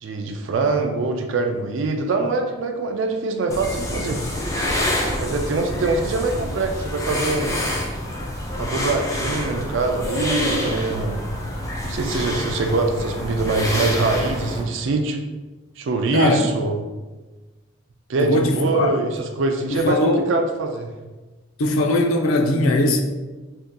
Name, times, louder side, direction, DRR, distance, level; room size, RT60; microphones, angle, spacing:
voice 1, 0.0-4.2 5.2-7.6 8.6-11.2 11.8-15.2 15.8-16.8 18.1-20.9, right 3 dB, 65° right, 4 dB, 0.3 m, -23 dB
sound 1, 3.5-14.6, left 1 dB, 15° left, 0.3 m, -27 dB
voice 2, 16.1-16.4 18.2-19.0 19.7-20.3 21.6-23.0, left 1 dB, 80° left, 3 dB, 0.4 m, -20 dB
3.5 x 2.7 x 2.3 m, 1.2 s
head